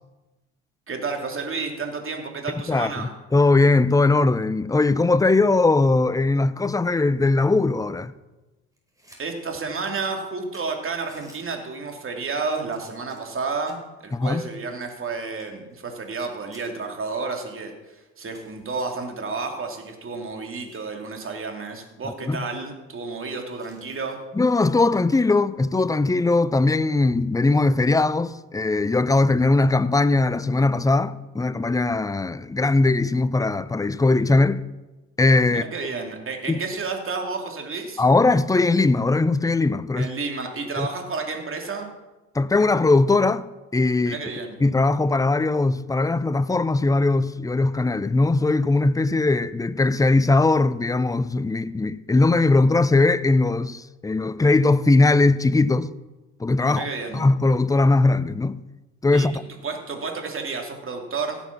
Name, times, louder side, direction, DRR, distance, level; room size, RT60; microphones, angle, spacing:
voice 1, 0.9-3.1 9.2-24.2 35.5-38.0 40.0-41.9 44.0-44.6 56.6-57.2 59.1-59.3 59.6-61.4, right 4 dB, 35° right, 2.8 m, -31 dB
voice 2, 2.7-8.1 14.1-14.4 22.2-22.4 24.4-34.7 35.2-35.6 36.5-36.6 38.0-40.1 40.8-40.9 42.3-44.2 44.6-55.9 56.4-56.9 57.1-58.6 59.0-59.3, left 3 dB, 10° left, 0.6 m, -20 dB
sound 1, 8.7-9.2 9.6-9.7 10.2-10.3 10.5-11.4 12.1-12.4 12.7-13.9 14.4-16.3 16.5-16.7 17.3-17.4 17.7-17.8 18.3-18.8 19.7-21.0 21.3-21.5 21.8-21.9 22.3-22.7 23.6-24.2 25.9-26.1, right 1 dB, 10° right, 4.9 m, -55 dB
16.5 x 7.1 x 6.0 m
hypercardioid pair, 55°, 37 cm